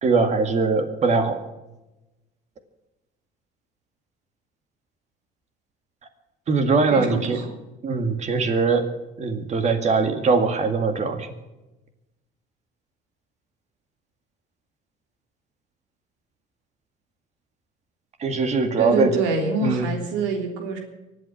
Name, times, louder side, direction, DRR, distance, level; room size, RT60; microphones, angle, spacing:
voice 1, 0.0-1.4 6.5-7.4 7.8-8.9 9.2-11.3 18.2-19.1 19.6-19.9, right 4 dB, 40° right, 8 dB, 2.1 m, -21 dB
voice 2, 6.9-7.5 18.8-20.8, right 3 dB, 85° right, 3 dB, 3.4 m, -25 dB
24.0 x 8.7 x 5.9 m, 1.0 s
cardioid pair, 110°, 18 cm